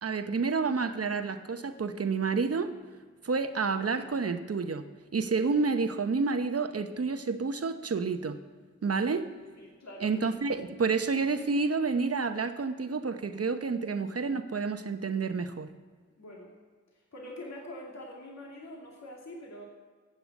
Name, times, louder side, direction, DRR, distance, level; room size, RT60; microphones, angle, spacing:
voice 1, 0.0-2.7 3.2-4.9 5.1-8.4 8.8-9.3 10.0-15.7, right 4 dB, 50° right, 8 dB, 0.9 m, -29 dB
voice 2, 9.6-10.1 16.2-16.5 16.9-19.6, left 1 dB, 60° left, -2 dB, 2.6 m, -44 dB
14.0 x 6.9 x 8.3 m, 1.5 s
cardioid pair, 55°, 30 cm